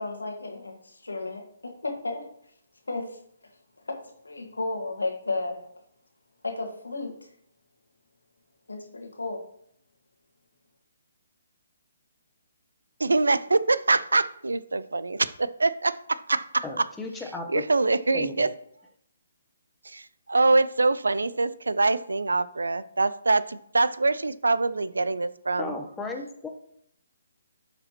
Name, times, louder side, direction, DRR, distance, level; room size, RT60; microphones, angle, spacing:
voice 1, 0.0-2.3 2.9-3.2 3.9-5.7 6.4-7.3 8.7-9.4, left 3 dB, 90° left, 3 dB, 1.7 m, -33 dB
voice 2, 13.0-16.9 17.5-18.5 19.8-25.7, right 3 dB, 85° right, 16 dB, 0.4 m, -24 dB
voice 3, 16.6-17.6 18.1-18.5 25.6-26.5, left 3 dB, 10° left, 1 dB, 1.0 m, -35 dB
11.0 x 5.1 x 3.0 m, 0.68 s
hypercardioid pair, 145°, 0 cm